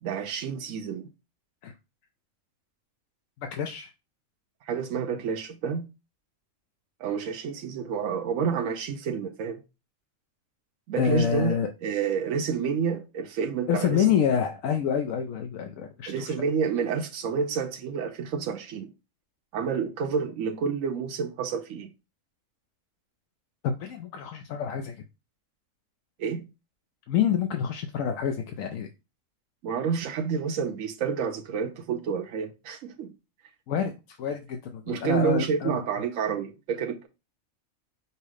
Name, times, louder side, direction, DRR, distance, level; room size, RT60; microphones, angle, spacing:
voice 1, 0.0-1.1 4.6-5.9 7.0-9.6 10.9-14.1 16.1-18.9 19.5-21.9 26.2-26.5 29.6-33.1 34.9-37.1, right 6 dB, 75° right, 1.0 m, -29 dB
voice 2, 3.4-3.9 11.0-11.7 13.7-16.3 23.6-25.0 27.1-28.9 33.7-35.8, left 8 dB, 80° left, 1.0 m, -27 dB
5.4 x 2.0 x 4.9 m
omnidirectional pair, 1.4 m